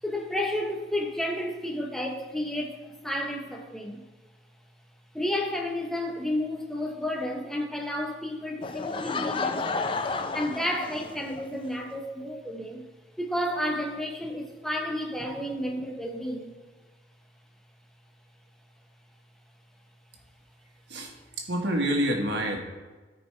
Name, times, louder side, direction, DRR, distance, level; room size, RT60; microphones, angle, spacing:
voice 1, 0.0-4.0 5.1-10.0 10.3-12.9 13.2-16.5, left 1 dB, ahead, 1 dB, 0.9 m, -31 dB
Laughter / Crowd, 8.6-11.5, left 3 dB, 30° left, 0.4 m, -31 dB
voice 2, 20.9-22.6, right 1 dB, 80° right, 1 dB, 1.4 m, -28 dB
13.0 x 5.2 x 3.2 m, 1.3 s
head